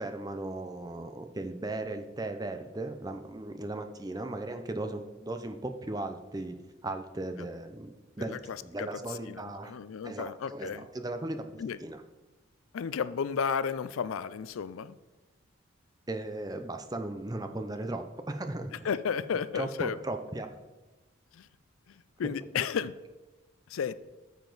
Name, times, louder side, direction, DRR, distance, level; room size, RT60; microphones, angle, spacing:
voice 1, 0.0-6.6 6.8-7.9 8.2-8.4 8.6-9.8 10.0-12.0 16.1-18.7 19.5-20.5, right 2 dB, 20° right, 7 dB, 0.5 m, -37 dB
voice 2, 8.2-8.9 9.3-10.9 11.6-11.8 12.7-15.0 18.8-20.0 21.3-21.5 21.9-22.9 23.7-23.9, left 6 dB, 85° left, 16 dB, 0.4 m, -33 dB
9.0 x 7.0 x 4.0 m, 1.1 s
head